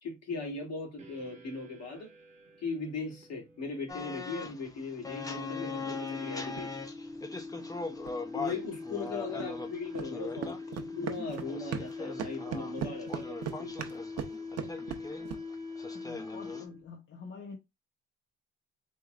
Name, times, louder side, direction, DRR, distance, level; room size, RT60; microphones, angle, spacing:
voice 1, 0.0-2.1 2.6-6.8 8.3-13.7, left 4 dB, 60° left, 2.3 m, -39 dB
sound 1, 1.0-16.9, left 3 dB, 25° right, 1.0 m, -44 dB
sound 2, 3.9-16.6, left 4 dB, 10° left, 0.6 m, -41 dB
sound 3, 6.4-6.6 8.1-8.2 9.4-9.5 9.9-10.1 10.4-11.9 12.2-15.4, right 9 dB, 55° right, 0.7 m, -38 dB
voice 2, 9.4-9.7 15.9-17.6, left 4 dB, 40° left, 0.9 m, -47 dB
4.4 x 3.0 x 2.4 m
cardioid pair, 115°, 30 cm